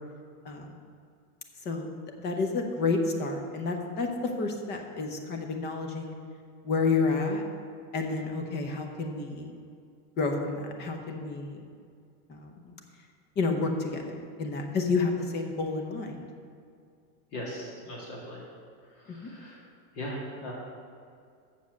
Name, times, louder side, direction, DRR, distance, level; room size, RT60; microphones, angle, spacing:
voice 1, 2.2-4.1 4.4-6.1 6.6-7.4 7.9-9.5 10.2-11.6 12.3-12.7 13.4-16.3, left 4 dB, 20° left, 4 dB, 0.8 m, -30 dB
voice 2, 17.3-18.5 18.9-19.7 19.9-20.5, equal, 40° left, -3 dB, 2.0 m, -39 dB
7.2 x 7.0 x 6.4 m, 2.3 s
supercardioid pair, 155°, 46 cm